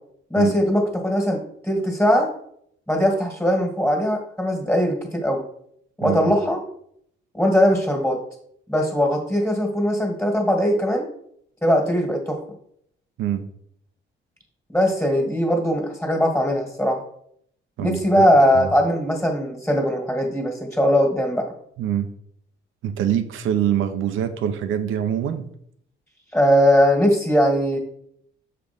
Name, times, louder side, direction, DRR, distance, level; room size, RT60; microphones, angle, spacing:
voice 1, 0.3-2.3 2.9-5.4 6.0-6.6 7.3-8.2 8.7-11.1 11.6-12.4 14.7-17.0 17.8-21.5 26.3-27.8, equal, 5° left, 0 dB, 1.9 m, -20 dB
voice 2, 6.0-6.3 13.2-13.5 17.8-18.3 18.5-18.7 21.8-22.1 22.8-25.4, right 10 dB, 85° right, 9 dB, 0.8 m, -24 dB
6.9 x 3.7 x 5.3 m, 0.69 s
cardioid pair, 90°, 20 cm